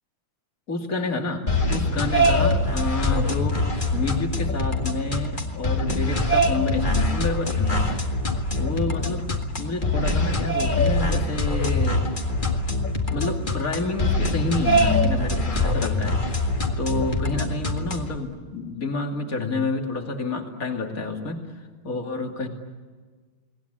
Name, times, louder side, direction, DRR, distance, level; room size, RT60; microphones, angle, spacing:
voice 1, 0.7-1.4 1.7-3.6 3.9-8.0 8.6-9.3 9.6-12.1 13.1-16.2 16.8-21.5 21.8-22.5, left 3 dB, 40° left, 3 dB, 3.0 m, -29 dB
sound 1, 1.5-18.2, left 1 dB, 25° left, 1.9 m, -24 dB
30.0 x 19.5 x 10.0 m, 1.4 s
omnidirectional pair, 2.2 m